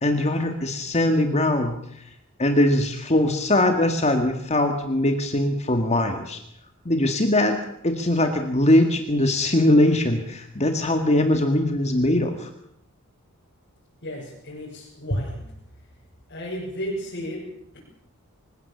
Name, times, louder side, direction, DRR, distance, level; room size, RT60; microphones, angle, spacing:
voice 1, 0.0-1.7 2.4-6.4 6.9-7.6 7.8-12.5, left 1 dB, 30° left, 6 dB, 1.9 m, -21 dB
voice 2, 14.0-15.4 16.3-17.8, equal, 50° left, -5 dB, 6.5 m, -32 dB
26.0 x 16.5 x 7.3 m, 0.73 s
head